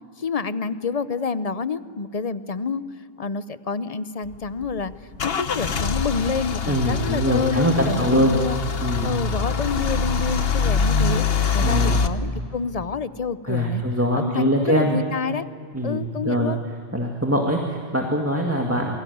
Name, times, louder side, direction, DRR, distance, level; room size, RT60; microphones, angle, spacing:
voice 1, 0.2-2.8 3.2-4.9 5.2-8.6 9.0-11.2 11.5-13.8 14.1-15.4 15.8-16.6, left 5 dB, 40° left, 14 dB, 0.8 m, -28 dB
Car / Engine starting / Idling, 4.3-12.1, left 5 dB, 65° left, 1.2 m, -24 dB
voice 2, 6.7-8.4 8.8-9.2 11.6-12.0 13.5-15.0 15.7-16.5 16.9-19.0, equal, 15° right, 0 dB, 2.0 m, -23 dB
28.0 x 21.5 x 9.3 m, 2.4 s
omnidirectional pair, 1.1 m